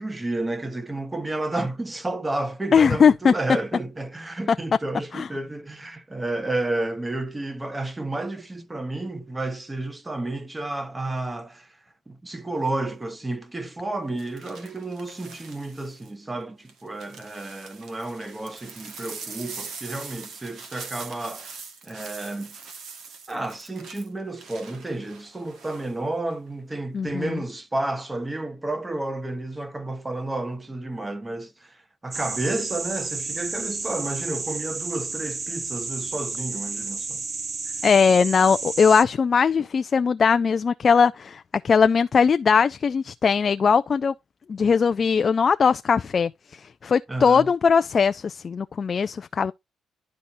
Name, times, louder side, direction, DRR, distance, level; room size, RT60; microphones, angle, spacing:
voice 1, 0.0-11.8 12.1-21.6 21.8-22.6 23.3-37.2 37.7-37.8 47.1-47.5, right 2 dB, 15° right, 1.2 m, -31 dB
voice 2, 2.7-3.3 5.1-5.3 26.9-27.4 37.8-44.1 44.5-49.5, left 6 dB, 45° left, 0.4 m, -20 dB
sound 1, 12.5-12.9 14.2-16.1 16.7-25.9 26.3-26.8, right 5 dB, 70° right, 1.5 m, -42 dB
sound 2, 32.1-39.0, right 4 dB, 35° right, 0.7 m, -32 dB
11.5 x 4.1 x 2.6 m
cardioid pair, 90°, 0 cm